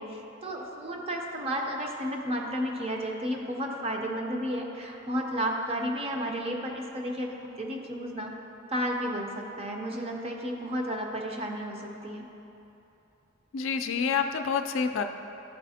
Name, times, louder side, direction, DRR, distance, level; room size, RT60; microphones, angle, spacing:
voice 1, 0.0-8.4 8.7-12.2, equal, 30° right, 1 dB, 0.6 m, -32 dB
voice 2, 13.5-15.0, left 6 dB, 70° left, 7 dB, 0.4 m, -28 dB
11.5 x 4.1 x 2.7 m, 3.0 s
head